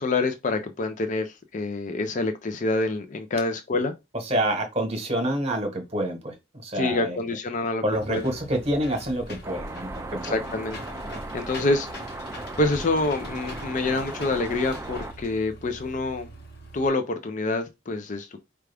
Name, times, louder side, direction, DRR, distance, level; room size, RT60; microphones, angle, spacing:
voice 1, 0.0-3.9 6.8-7.8 8.1-8.2 10.3-10.8 11.3-11.9 12.6-16.3 16.7-18.4, left 2 dB, 40° left, 0.5 m, -26 dB
voice 2, 4.1-7.2 7.8-10.4 11.6-11.7, right 1 dB, 35° right, 1.1 m, -27 dB
Engine / Mechanisms, 7.9-16.9, equal, 55° left, 1.1 m, -42 dB
sound 1, 9.4-15.1, right 2 dB, 15° right, 0.3 m, -37 dB
4.7 x 2.4 x 3.4 m
head